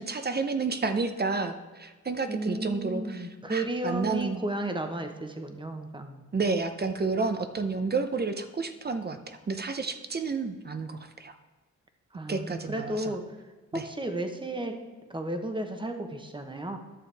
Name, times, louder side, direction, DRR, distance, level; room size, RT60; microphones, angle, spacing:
voice 1, 0.0-4.4 6.3-11.3 12.3-13.1 13.7-13.8, right 4 dB, 35° right, 8 dB, 0.7 m, -30 dB
voice 2, 2.3-6.2 12.1-13.4 13.7-14.8 15.1-16.8, right 1 dB, 15° right, 5 dB, 1.1 m, -33 dB
11.5 x 6.8 x 3.5 m, 1.3 s
cardioid pair, 90°, 30 cm